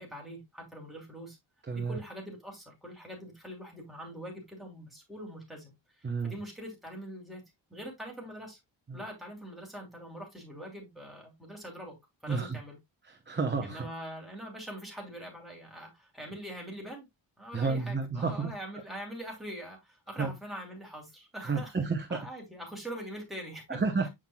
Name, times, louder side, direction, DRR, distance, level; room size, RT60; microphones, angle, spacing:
voice 1, 0.0-1.4 1.7-7.4 7.7-8.6 8.9-11.9 12.2-12.8 13.6-17.1 17.4-21.7 22.1-23.8, equal, ahead, 2.7 m, -43 dB
voice 2, 1.7-2.0 6.0-6.4 8.9-9.0 12.3-12.6 13.1-13.9 17.5-18.5 20.2-20.3 21.4-22.2 23.7-24.1, right 4 dB, 20° right, 0.9 m, -31 dB
7.5 x 5.7 x 2.2 m
wide cardioid pair, 150°, 48 cm